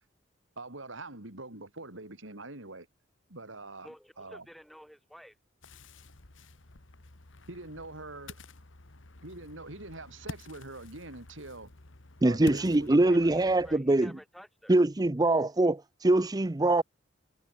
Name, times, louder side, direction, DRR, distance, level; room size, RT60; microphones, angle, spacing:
voice 1, 0.6-2.9 3.3-4.4 7.5-8.4 9.2-11.7 12.2-13.4, right 2 dB, 90° right, 4.7 m, -44 dB
voice 2, 3.8-5.4 12.4-12.6 13.0-14.8, equal, ahead, 6.5 m, -51 dB
Ocean, 5.6-13.8, left 2 dB, 80° left, 1.9 m, -48 dB
voice 3, 12.2-14.1 14.7-16.8, right 2 dB, 20° right, 0.6 m, -23 dB
head